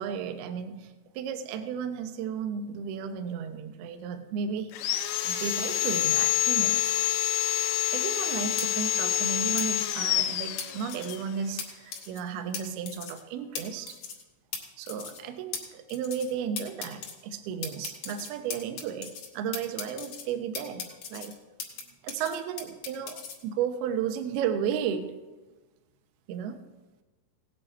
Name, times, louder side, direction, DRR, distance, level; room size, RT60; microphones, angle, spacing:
voice 1, 0.0-5.0 5.2-6.9 7.9-14.0 14.8-21.4 22.0-25.1 26.3-26.6, right 7 dB, 75° right, 7 dB, 2.4 m, -34 dB
Sawing, 4.7-11.2, left 12 dB, 90° left, 3.0 m, -27 dB
sound 1, 8.6-8.7 9.6-9.7 10.6-11.2 11.6-11.7 11.9-12.2 12.5-12.6 12.9-13.2 13.6-13.7 13.9-14.2 14.5-14.6 14.9-15.2 15.5-15.6 15.9-16.3 16.6-17.1 17.6-19.3 19.5-20.2 20.6-21.8 22.1-23.4, left 6 dB, 55° left, 2.3 m, -37 dB
17.5 x 8.8 x 4.4 m, 1.2 s
omnidirectional pair, 5.4 m